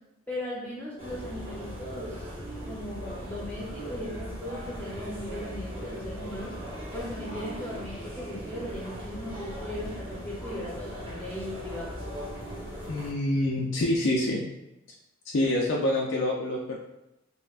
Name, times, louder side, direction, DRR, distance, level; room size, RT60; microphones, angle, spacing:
voice 1, 0.3-2.3 2.6-6.5 6.9-12.0, left 1 dB, 10° left, -6 dB, 0.7 m, -38 dB
sound 1, 1.0-13.1, equal, 25° right, 0.8 m, -39 dB
voice 2, 12.9-14.4 15.3-16.8, left 1 dB, 60° left, -2 dB, 0.4 m, -26 dB
5.4 x 2.1 x 2.4 m, 0.89 s
head